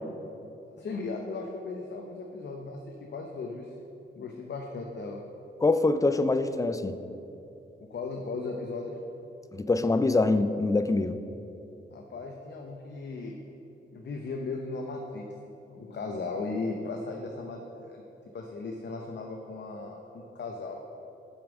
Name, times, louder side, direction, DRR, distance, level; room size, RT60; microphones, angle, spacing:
voice 1, 0.7-3.7 4.2-5.2 7.8-9.0 11.9-13.3 13.9-15.2 15.6-18.0 18.3-20.8, left 3 dB, 60° left, 1 dB, 0.7 m, -37 dB
voice 2, 5.6-7.0 9.5-11.2, left 3 dB, 15° left, 10 dB, 0.4 m, -24 dB
7.1 x 5.3 x 6.0 m, 2.8 s
cardioid pair, 75°, 20 cm